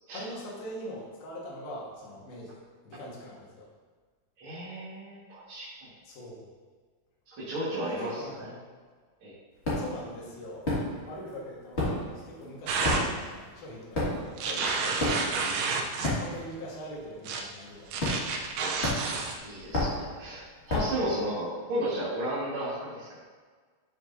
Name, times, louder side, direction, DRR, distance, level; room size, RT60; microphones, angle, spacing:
voice 1, 0.1-2.5 2.8-3.7 6.0-6.4 7.8-8.6 9.8-15.7 16.1-18.1, equal, 70° left, -4 dB, 3.4 m, -42 dB
voice 2, 4.4-5.9 7.3-8.5 9.2-9.3 19.4-23.2, right 1 dB, 45° right, -10 dB, 1.8 m, -34 dB
carpet-beating, 9.6-10.0 10.6-11.3 11.5-16.7 16.9-17.2 18.0-18.5 18.8-21.1, left 1 dB, 30° left, 1.2 m, -31 dB
sound 1, 12.7-13.0 14.4-16.2 17.2-17.4 17.9-19.4, right 4 dB, 80° right, 1.9 m, -30 dB
11.5 x 6.1 x 2.7 m, 1.5 s
omnidirectional pair, 4.6 m